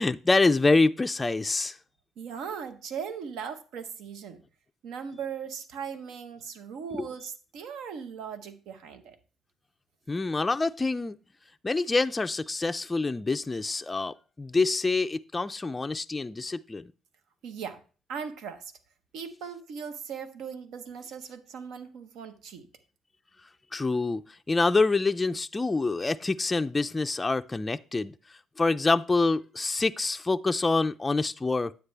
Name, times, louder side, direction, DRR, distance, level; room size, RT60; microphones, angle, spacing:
voice 1, 0.0-1.8 6.9-7.1 10.1-11.2 11.6-16.9 23.7-28.1 28.6-31.8, left 3 dB, 20° left, 0.3 m, -26 dB
voice 2, 2.2-4.4 4.8-9.2 17.4-17.8 18.1-18.6 19.1-22.7, right 7 dB, 80° right, 1.0 m, -38 dB
9.6 x 8.2 x 3.3 m
cardioid pair, 95°, 0 cm